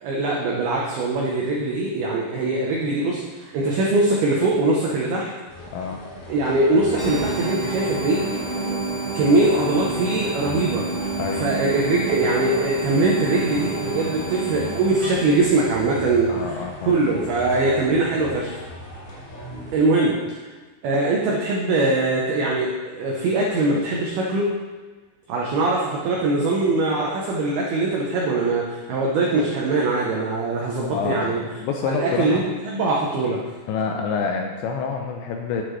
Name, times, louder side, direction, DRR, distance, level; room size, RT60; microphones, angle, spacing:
voice 1, 0.0-5.3 6.3-8.3 9.1-10.9 11.3-16.6 16.9-18.6 19.7-20.5 20.8-24.5 25.3-31.4 31.8-33.4, right 2 dB, 80° right, -3 dB, 2.2 m, -22 dB
sound 1, 5.5-19.7, equal, 65° left, 4.1 m, -38 dB
voice 2, 5.7-6.0 9.3-9.6 11.2-11.6 16.3-16.9 30.9-31.3 31.6-32.4 33.7-35.6, left 5 dB, 85° left, 2 dB, 2.6 m, -27 dB
sound 2, 7.0-16.3, right 3 dB, 30° left, 0.6 m, -30 dB
9.9 x 8.4 x 3.2 m, 1.3 s
omnidirectional pair, 5.7 m